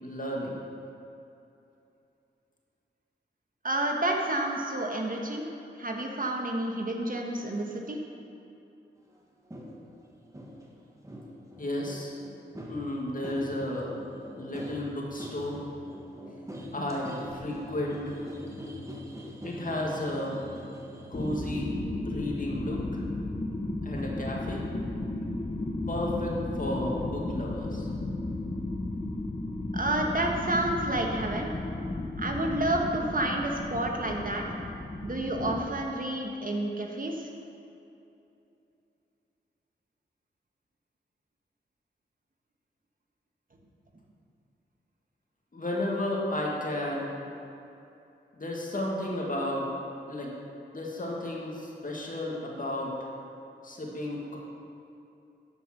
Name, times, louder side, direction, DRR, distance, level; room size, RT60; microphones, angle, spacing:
voice 1, 0.0-0.6 11.6-12.1 12.7-14.0 14.4-15.6 16.3-16.4 16.7-18.2 19.4-20.5 21.1-21.8 22.0-23.0 23.8-24.6 25.9-27.9 45.5-47.2 48.4-49.7 50.1-50.4 50.7-53.1 53.6-54.4, left 1 dB, 45° left, -3 dB, 2.2 m, -33 dB
voice 2, 3.6-5.5 5.8-8.0 29.7-31.5 32.2-34.4 35.0-37.3, right 1 dB, 45° right, 1 dB, 1.4 m, -30 dB
sound 1, 9.5-9.8 10.3-10.6 11.0-21.5, equal, 15° right, 1.8 m, -43 dB
sound 2, 21.1-35.6, left 2 dB, 30° left, 1.0 m, -34 dB
12.0 x 5.4 x 6.1 m, 2.7 s
cardioid pair, 50°, 20 cm